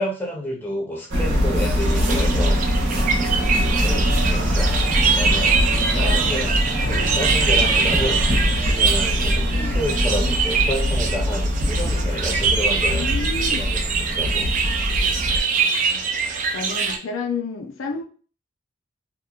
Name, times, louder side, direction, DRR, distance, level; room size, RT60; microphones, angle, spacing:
voice 1, 0.0-2.6 3.5-5.5 5.9-13.1 13.5-14.5, equal, 10° left, -3 dB, 0.6 m, -30 dB
sound 1, 1.1-15.4, equal, 70° right, 0.9 m, -22 dB
sound 2, 1.8-17.0, right 5 dB, 40° right, 0.3 m, -24 dB
voice 2, 6.0-6.4 6.9-7.2 9.5-9.8 12.9-13.7 15.6-16.0 16.5-18.0, left 4 dB, 80° left, 3 dB, 0.4 m, -31 dB
2.9 x 2.1 x 2.3 m, 0.40 s
head